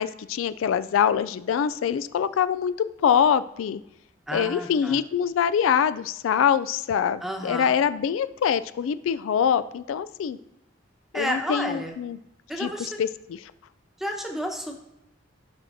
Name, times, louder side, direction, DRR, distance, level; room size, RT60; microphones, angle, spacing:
voice 1, 0.0-2.7 3.0-3.8 4.3-10.4 11.1-12.2 12.6-12.7 13.0-13.1, left 8 dB, 85° left, 14 dB, 0.3 m, -24 dB
voice 2, 4.3-5.0 7.2-7.7 11.1-12.0 12.5-13.0 14.0-14.8, equal, ahead, 2 dB, 1.0 m, -31 dB
15.5 x 5.8 x 2.7 m, 0.88 s
head